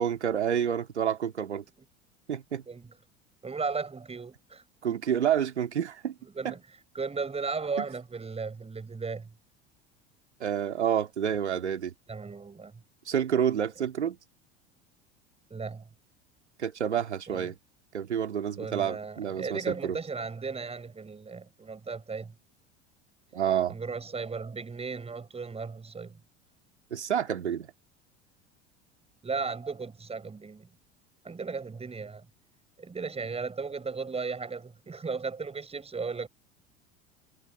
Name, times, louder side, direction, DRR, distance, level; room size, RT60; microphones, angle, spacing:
voice 1, 0.0-1.6 2.3-2.6 4.8-6.1 6.4-6.5 7.8-7.9 10.4-11.9 13.1-14.2 16.6-17.6 17.9-20.0 23.3-23.8 26.9-27.7, right 9 dB, 75° right, 2.6 m, -28 dB
voice 2, 3.4-4.6 6.2-6.6 6.9-9.3 12.1-12.7 15.5-15.8 17.3-17.5 18.6-22.3 23.7-26.2 29.2-30.7 31.2-32.2 32.8-36.3, right 4 dB, 15° right, 6.6 m, -36 dB
figure-of-eight pair, 70°, 34 cm